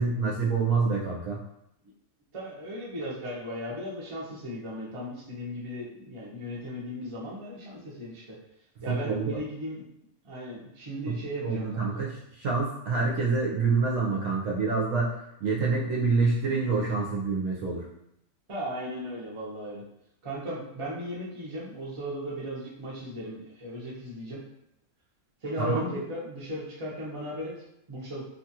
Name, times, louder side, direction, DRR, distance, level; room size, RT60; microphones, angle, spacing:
voice 1, 0.0-1.4 8.9-9.4 11.1-11.2 11.4-17.8 25.6-26.0, right 4 dB, 65° right, -4 dB, 0.9 m, -27 dB
voice 2, 2.3-8.2 8.8-9.8 10.2-12.1 18.5-19.8 20.2-24.4 25.4-27.5 27.9-28.2, equal, 30° right, -6 dB, 0.6 m, -36 dB
2.9 x 2.4 x 2.7 m, 0.79 s
omnidirectional pair, 1.6 m